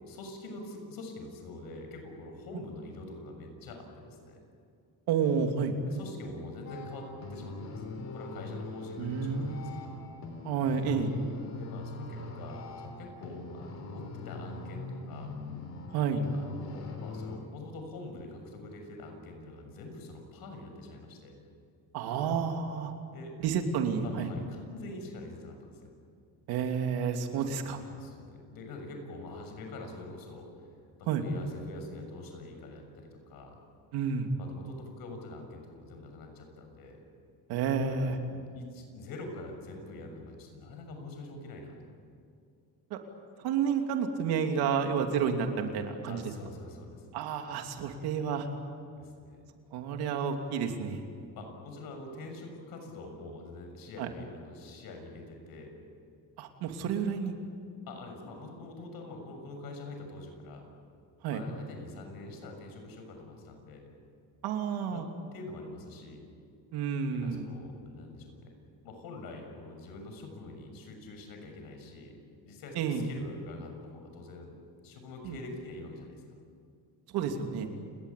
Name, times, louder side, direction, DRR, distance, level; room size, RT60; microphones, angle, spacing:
voice 1, 0.0-4.4 5.9-10.0 11.5-15.3 16.3-21.3 23.1-23.4 24.0-25.9 27.9-30.5 31.2-33.6 34.4-37.0 37.7-41.9 46.1-47.1 49.0-49.4 51.3-55.7 57.9-60.6 61.3-63.9 64.9-65.1 65.3-66.2 67.1-68.5 68.8-72.2 72.4-74.6 74.8-76.2, left 2 dB, 70° left, 4 dB, 6.8 m, -45 dB
voice 2, 5.1-5.7 9.0-9.7 10.4-11.1 15.9-16.2 21.9-22.9 23.4-24.3 26.5-27.8 31.1-31.2 33.9-34.3 37.5-38.2 42.9-43.0 43.4-46.2 47.1-48.5 49.7-51.0 54.0-54.1 56.4-57.3 61.2-61.4 64.4-65.1 66.7-67.4 72.8-73.1 75.2-75.3 77.1-77.7, right 6 dB, 80° right, 5 dB, 2.8 m, -30 dB
sound 1, 6.7-17.4, left 3 dB, 45° left, 3.7 m, -42 dB
29.5 x 19.5 x 8.4 m, 2.4 s
cardioid pair, 145°, 37 cm